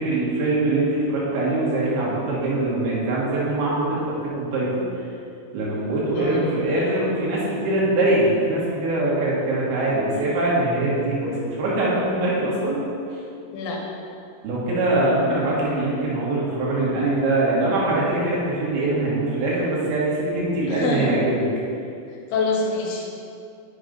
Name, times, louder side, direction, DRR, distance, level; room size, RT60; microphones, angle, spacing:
voice 1, 0.0-4.0 4.4-5.0 5.5-12.8 13.1-13.2 14.4-21.4, right 2 dB, 75° right, -6 dB, 3.6 m, -23 dB
voice 2, 6.1-6.6 13.5-13.8 20.7-21.1 22.3-23.1, left 3 dB, 85° left, -1 dB, 3.0 m, -26 dB
7.4 x 5.2 x 5.2 m, 2.6 s
omnidirectional pair, 4.5 m